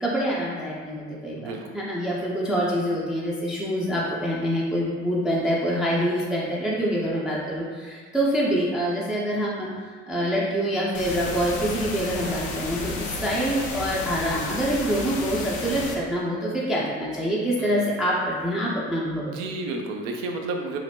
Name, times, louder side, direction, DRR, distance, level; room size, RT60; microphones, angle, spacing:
voice 1, 0.0-9.7 10.1-19.3, equal, ahead, -5 dB, 0.5 m, -26 dB
voice 2, 1.3-1.7 17.6-17.9 19.2-20.8, right 3 dB, 65° right, 2 dB, 0.5 m, -32 dB
sound 1, 10.9-15.9, left 3 dB, 55° left, 0.6 m, -32 dB
2.8 x 2.1 x 3.4 m, 1.5 s
hypercardioid pair, 60°, 35 cm